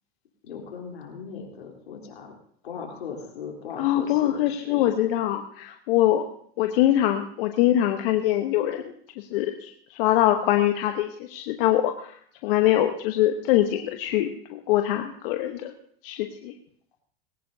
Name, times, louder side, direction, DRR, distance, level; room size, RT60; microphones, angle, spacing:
voice 1, 0.4-2.3 2.6-4.9, left 6 dB, 85° left, 1 dB, 3.6 m, -38 dB
voice 2, 3.8-6.3 6.6-15.7 16.0-16.5, left 13 dB, 65° left, 6 dB, 1.1 m, -23 dB
19.0 x 17.5 x 2.7 m, 0.62 s
hypercardioid pair, 105°, 30 cm